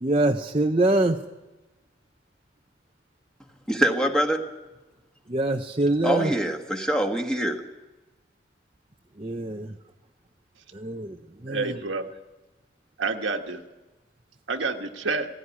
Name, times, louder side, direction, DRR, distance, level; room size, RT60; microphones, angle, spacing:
voice 1, 0.0-1.2 5.3-6.3 9.2-9.8 10.7-11.8, right 2 dB, 30° right, 0.7 m, -25 dB
voice 2, 3.7-4.4 6.0-7.6, right 1 dB, 5° left, 1.6 m, -24 dB
voice 3, 11.5-12.1 13.0-13.6 14.5-15.3, right 4 dB, 80° right, 1.6 m, -28 dB
17.5 x 16.0 x 9.9 m
head